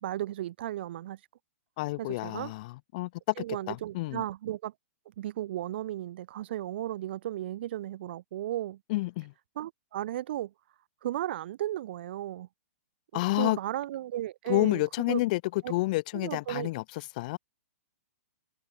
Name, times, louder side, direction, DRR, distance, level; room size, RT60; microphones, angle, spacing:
voice 1, 0.0-1.2 2.0-2.5 3.4-4.7 5.2-8.8 9.6-10.5 11.0-12.5 13.1-14.8 15.1-15.2 15.6-15.7 16.2-16.7, right 13 dB, 50° right, 1.8 m, -35 dB
voice 2, 1.8-3.3 3.7-4.2 8.9-9.3 13.1-13.6 14.5-16.8 17.2-17.4, left 20 dB, 35° left, 0.7 m, -29 dB
hypercardioid pair, 165°, 8 cm